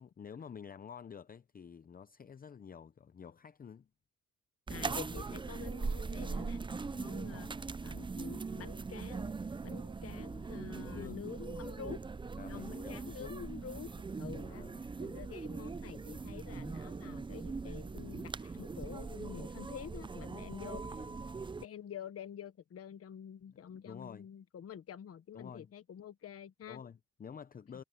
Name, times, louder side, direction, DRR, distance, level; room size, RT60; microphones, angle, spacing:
voice 1, 0.0-3.9 10.7-11.2 12.4-13.3 14.5-14.8 21.0-21.1 23.7-24.3 25.3-25.7 26.7-27.8, left 7 dB, 30° left, 0.7 m, -49 dB
voice 2, 4.7-9.3 9.6-12.0 12.5-13.9 14.2-21.1 21.6-26.8, left 8 dB, 50° left, 1.3 m, -48 dB
sound 1, 4.7-21.7, right 4 dB, 15° right, 0.5 m, -41 dB
cardioid pair, 90°, 30 cm